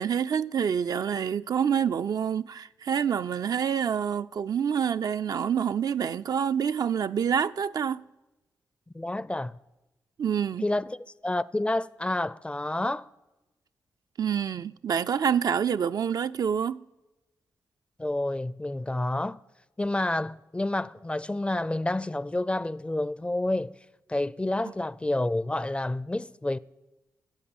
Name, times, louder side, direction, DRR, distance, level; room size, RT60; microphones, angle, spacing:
voice 1, 0.0-8.0 10.2-10.6 14.2-16.8, right 7 dB, 65° right, 0.4 m, -27 dB
voice 2, 8.9-9.6 10.6-13.1 18.0-19.4 19.8-23.8 24.1-26.6, left 1 dB, 15° left, 0.4 m, -29 dB
14.5 x 8.0 x 7.2 m
supercardioid pair, 50°, 7 cm